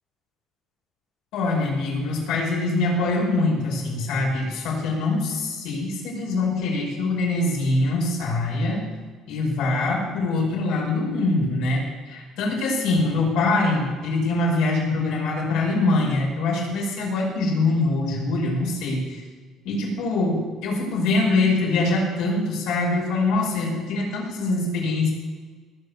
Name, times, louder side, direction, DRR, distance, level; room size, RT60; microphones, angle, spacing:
voice 1, 1.3-8.9 9.3-19.2 19.6-25.1, left 2 dB, 85° left, -3 dB, 5.5 m, -23 dB
19.5 x 7.1 x 7.0 m, 1.5 s
cardioid pair, 130°, 0 cm